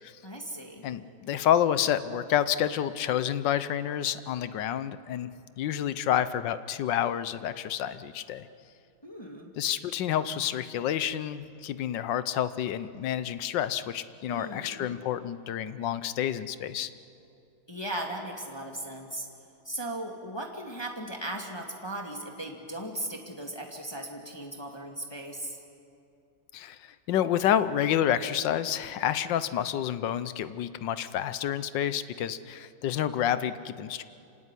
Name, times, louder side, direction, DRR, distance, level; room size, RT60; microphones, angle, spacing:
voice 1, 0.2-0.8 9.0-9.5 14.3-14.9 17.7-19.3 19.6-25.6, right 1 dB, 10° left, 1 dB, 1.9 m, -37 dB
voice 2, 0.8-5.3 5.6-8.5 9.6-16.9 26.5-34.0, left 10 dB, 65° left, 14 dB, 1.3 m, -29 dB
26.5 x 17.5 x 9.7 m, 2.6 s
omnidirectional pair, 2.4 m